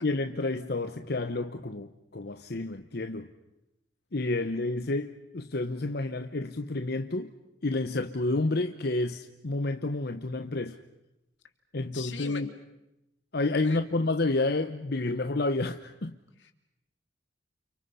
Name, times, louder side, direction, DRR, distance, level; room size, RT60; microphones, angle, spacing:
voice 1, 0.0-3.3 4.1-7.3 7.6-10.8 11.7-12.5 13.3-16.1, left 2 dB, 60° left, 1.0 m, -30 dB
voice 2, 11.9-12.4 13.6-13.8 16.4-16.5, left 6 dB, 85° left, 2.7 m, -40 dB
30.0 x 29.5 x 5.6 m
head